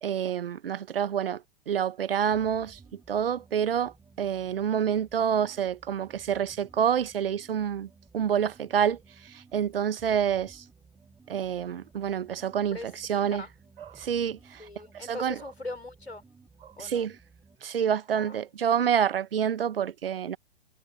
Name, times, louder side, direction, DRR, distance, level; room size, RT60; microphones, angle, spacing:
voice 1, 0.0-2.8 3.1-7.9 8.1-10.6 11.3-13.4 13.8-14.7 15.0-15.4 16.6-17.1 17.6-20.4, right 8 dB, 65° right, 1.2 m, -28 dB
sound 1, 2.3-17.7, right 4 dB, 10° right, 3.6 m, -57 dB
voice 2, 12.7-13.5 14.6-16.2 16.8-17.1 18.1-18.4, left 2 dB, 85° left, 5.1 m, -41 dB
figure-of-eight pair, 110°, 31 cm